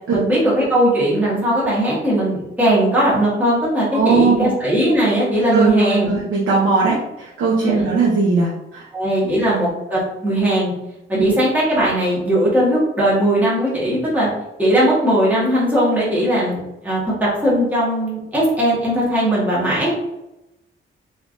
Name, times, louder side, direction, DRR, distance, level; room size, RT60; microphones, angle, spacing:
voice 1, 0.1-6.1 7.6-7.9 8.9-10.7 11.1-14.3 14.6-20.0, right 1 dB, 10° right, -8 dB, 1.5 m, -18 dB
voice 2, 3.9-4.5 5.5-8.9 11.1-11.4, right 4 dB, 80° right, -5 dB, 0.8 m, -19 dB
3.3 x 3.1 x 2.6 m, 0.90 s
wide cardioid pair, 145°, 21 cm